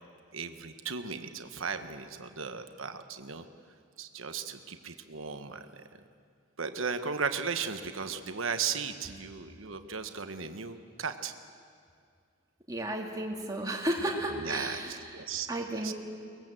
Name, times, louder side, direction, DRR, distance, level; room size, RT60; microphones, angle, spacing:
voice 1, 0.3-3.5 4.0-5.8 6.6-11.3 14.4-14.8 15.1-15.5 15.8-15.9, right 5 dB, 75° right, 8 dB, 1.3 m, -36 dB
voice 2, 12.7-15.9, right 1 dB, 15° right, -1 dB, 2.5 m, -33 dB
23.5 x 20.5 x 7.7 m, 2.3 s
head